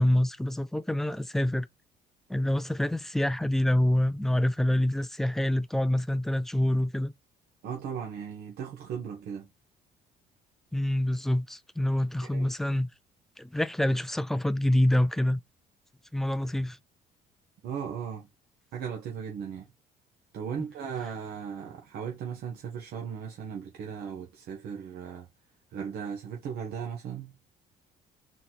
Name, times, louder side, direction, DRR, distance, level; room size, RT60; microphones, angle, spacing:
voice 1, 0.0-1.7 2.3-7.1 10.7-12.9 13.4-15.4 16.1-16.8, left 1 dB, ahead, 0.3 m, -26 dB
voice 2, 7.6-9.5 12.3-12.5 17.6-18.3 18.7-19.7 20.3-25.3 25.7-27.3, right 7 dB, 70° right, 1.0 m, -37 dB
4.1 x 3.0 x 4.0 m
cardioid pair, 110°, 17 cm